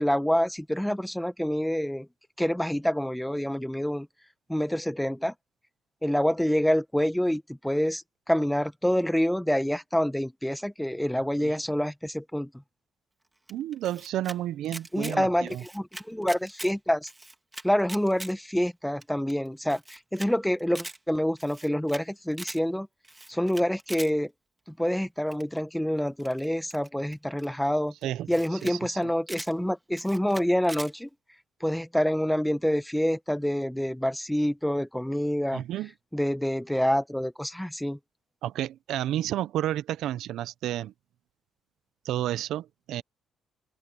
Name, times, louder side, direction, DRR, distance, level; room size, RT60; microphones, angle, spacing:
voice 1, 0.0-2.1 2.4-4.1 4.5-5.3 6.0-8.0 8.3-12.5 14.9-17.1 17.6-22.9 23.3-24.3 24.8-27.9 28.3-31.1 31.6-35.6 36.1-38.0, equal, 5° left, 1.0 m, -27 dB
Camera, 13.5-14.4 14.6-15.2 15.5-16.7 17.0-18.3 18.7-18.8 19.0-19.1 19.3-19.4 19.7-20.3 20.6-21.0 21.4-22.0 22.3-22.6 23.0-24.1 25.3-25.6 26.2-27.5 28.0-28.1 28.3-28.8 29.0-29.5 29.9-30.9, right 2 dB, 15° right, 2.5 m, -41 dB
voice 2, 13.5-15.6 28.0-29.0 35.5-35.9 38.4-40.9 42.0-43.0, right 12 dB, 85° right, 0.6 m, -31 dB
open air
cardioid pair, 90°, 0 cm